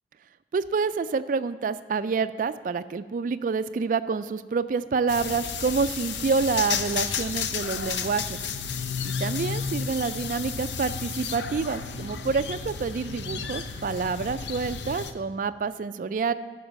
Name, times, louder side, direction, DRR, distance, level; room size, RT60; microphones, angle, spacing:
voice 1, 0.5-8.4 9.0-16.3, right 5 dB, 50° right, 12 dB, 0.3 m, -28 dB
sound 1, 5.1-15.1, left 6 dB, 80° left, 0.6 m, -32 dB
13.5 x 5.4 x 5.2 m, 1.4 s
head